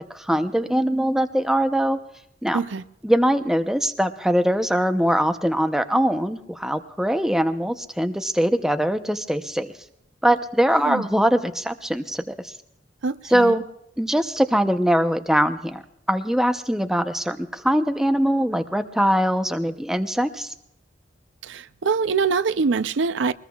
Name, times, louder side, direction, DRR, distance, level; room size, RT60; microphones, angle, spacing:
voice 1, 0.0-2.0 2.4-2.6 3.0-9.7 10.2-12.5 13.3-13.6 14.0-15.8 16.1-20.5, equal, 5° right, 0.6 m, -22 dB
voice 2, 13.0-13.5 21.4-23.3, right 5 dB, 80° right, 0.5 m, -24 dB
22.0 x 20.5 x 2.3 m
head